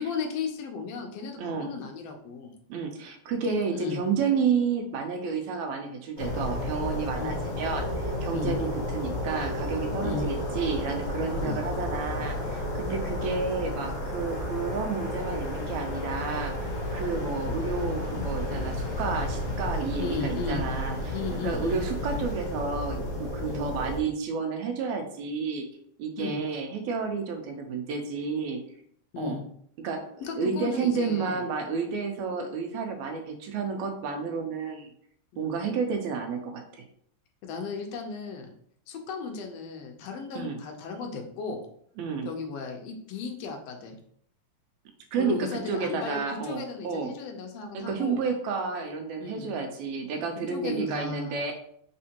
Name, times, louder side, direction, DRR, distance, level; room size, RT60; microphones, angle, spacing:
voice 1, 0.0-2.5 3.5-4.0 7.2-7.4 8.3-8.6 10.0-10.3 11.4-11.6 20.0-20.6 21.1-21.8 23.4-23.7 26.2-26.4 29.1-29.4 30.2-31.4 35.3-35.6 37.4-38.5 38.9-41.6 42.2-44.0 45.2-48.2 49.2-49.5 50.5-51.5, left 5 dB, 80° left, 3 dB, 1.4 m, -35 dB
voice 2, 1.4-1.7 2.7-25.7 26.0-28.6 29.2-29.4 29.8-34.9 35.4-36.8 40.4-40.6 42.0-42.3 45.1-47.1 47.7-51.5, right 5 dB, 80° right, 5 dB, 1.9 m, -31 dB
sound 1, 6.2-24.0, left 1 dB, 50° left, 1.0 m, -32 dB
4.2 x 3.7 x 2.8 m, 0.65 s
omnidirectional pair, 3.5 m